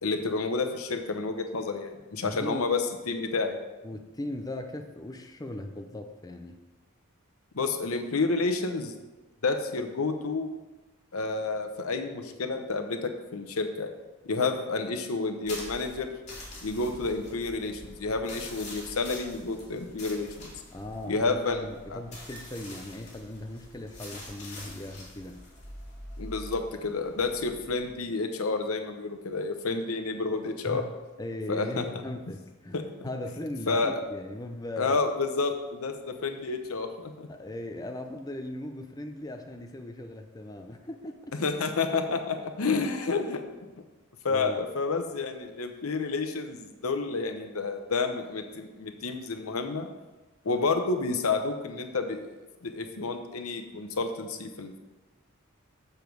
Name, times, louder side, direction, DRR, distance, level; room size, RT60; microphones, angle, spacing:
voice 1, 0.0-2.8 3.1-3.6 7.5-8.9 9.4-10.5 11.1-13.9 14.3-16.1 16.6-20.5 21.1-21.6 21.9-22.0 26.2-30.8 31.5-31.8 32.7-33.1 33.7-34.0 34.8-37.3 41.4-43.4 44.2-49.9 50.4-52.3 52.6-54.8, left 3 dB, 80° left, 6 dB, 0.8 m, -30 dB
voice 2, 2.2-2.7 3.8-6.6 20.7-25.4 30.7-35.0 37.3-41.4 44.3-44.6, left 1 dB, 15° left, 5 dB, 0.5 m, -38 dB
sound 1, 15.4-27.9, left 1 dB, 35° left, 2.5 m, -45 dB
7.1 x 6.7 x 4.6 m, 1.2 s
head